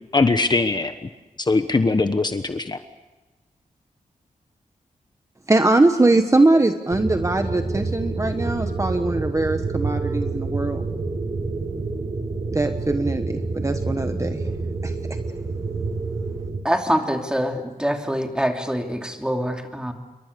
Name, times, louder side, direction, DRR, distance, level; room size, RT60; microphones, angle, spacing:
voice 1, 0.1-1.1 1.4-2.8, left 3 dB, 30° left, 8 dB, 1.2 m, -21 dB
voice 2, 5.5-10.8 12.5-14.4 14.8-15.2, right 2 dB, 20° right, 7 dB, 1.2 m, -21 dB
sound 1, 6.9-16.6, right 3 dB, 45° right, 3.1 m, -28 dB
voice 3, 16.6-19.9, equal, 5° right, 3 dB, 2.9 m, -24 dB
28.0 x 23.5 x 6.8 m, 1.2 s
wide cardioid pair, 135°, 14 cm